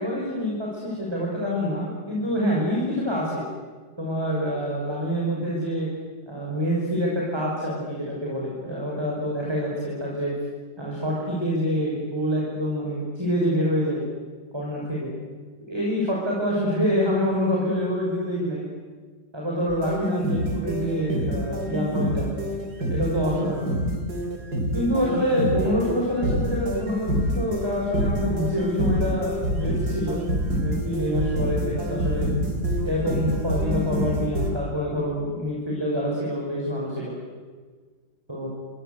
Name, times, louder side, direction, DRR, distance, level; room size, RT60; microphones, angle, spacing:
voice 1, 0.0-3.4 4.0-5.9 6.3-10.3 10.8-14.0 14.5-15.1 15.7-18.6 19.3-22.3 22.9-23.7 24.7-30.2 30.5-32.3 32.8-37.2 38.3-38.5, equal, 15° right, -3 dB, 5.9 m, -26 dB
sound 1, 19.7-34.5, equal, 60° right, 4.3 m, -26 dB
28.5 x 24.5 x 8.1 m, 1.5 s
omnidirectional pair, 1.9 m